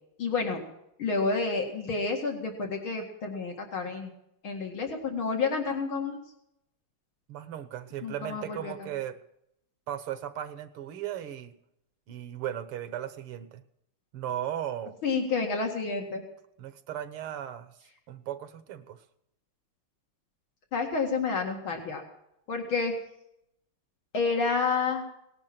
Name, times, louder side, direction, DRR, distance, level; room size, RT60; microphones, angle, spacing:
voice 1, 0.2-0.6 1.0-4.1 4.4-6.2 8.0-8.7 15.0-16.2 20.7-22.0 22.5-22.9 24.1-25.0, left 4 dB, 70° left, 2 dB, 2.9 m, -29 dB
voice 2, 7.3-9.2 9.9-11.6 12.1-13.6 14.1-15.0 16.6-17.7 18.1-19.0, right 11 dB, 90° right, 12 dB, 2.0 m, -36 dB
19.0 x 10.5 x 6.0 m, 0.78 s
omnidirectional pair, 2.4 m